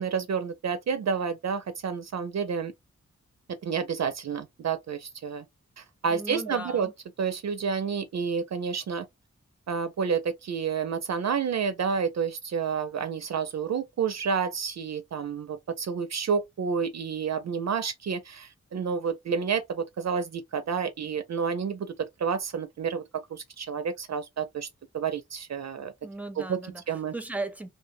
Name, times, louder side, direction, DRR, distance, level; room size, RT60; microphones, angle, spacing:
voice 1, 0.0-2.7 3.6-5.4 5.8-6.9 7.2-9.1 9.7-21.9 22.2-23.0 23.3-24.7 24.9-25.9 26.3-26.6 26.9-27.1, right 6 dB, 60° right, 0.4 m, -29 dB
voice 2, 6.1-6.9 26.0-26.8 27.1-27.7, right 2 dB, 5° right, 0.6 m, -36 dB
2.8 x 2.0 x 2.5 m
wide cardioid pair, 80°, 30 cm